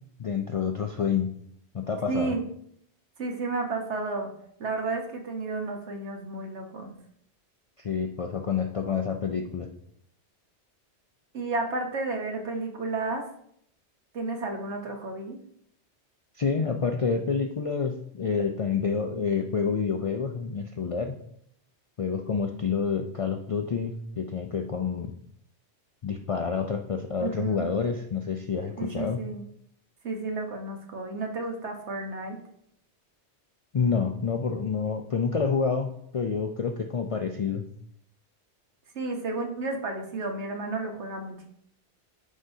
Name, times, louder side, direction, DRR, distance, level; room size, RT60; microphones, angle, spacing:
voice 1, 0.2-1.3 1.7-2.3 7.8-9.7 16.3-21.2 22.0-25.1 26.0-29.3 33.7-37.7, left 5 dB, 55° left, 4 dB, 0.3 m, -28 dB
voice 2, 2.1-2.4 3.2-4.3 4.6-6.9 11.3-13.2 14.1-15.4 27.2-27.7 28.8-29.4 30.0-32.4 38.9-41.5, right 3 dB, 80° right, 3 dB, 1.4 m, -32 dB
9.9 x 5.0 x 2.7 m, 0.69 s
omnidirectional pair, 1.2 m